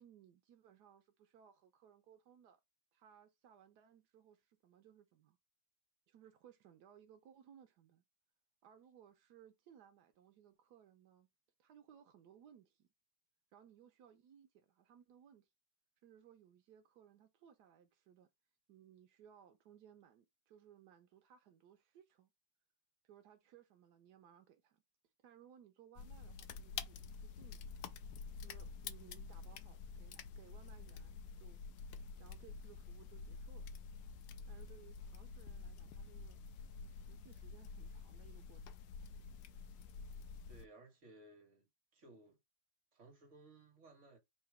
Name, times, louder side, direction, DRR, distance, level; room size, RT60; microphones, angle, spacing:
voice 1, 0.0-2.6 2.9-5.4 6.1-8.0 8.6-11.3 11.6-12.9 13.5-15.5 16.0-18.3 18.7-22.3 23.0-24.8 25.2-27.6 28.4-31.6 32.2-33.7 34.4-36.4 36.9-38.7, right 9 dB, 85° right, 1.3 m, -63 dB
sound 1, 26.0-40.7, left 5 dB, 85° left, 1.2 m, -49 dB
voice 2, 40.5-42.4 42.9-44.2, right 2 dB, 50° right, 1.8 m, -60 dB
4.1 x 2.8 x 4.7 m
omnidirectional pair, 1.7 m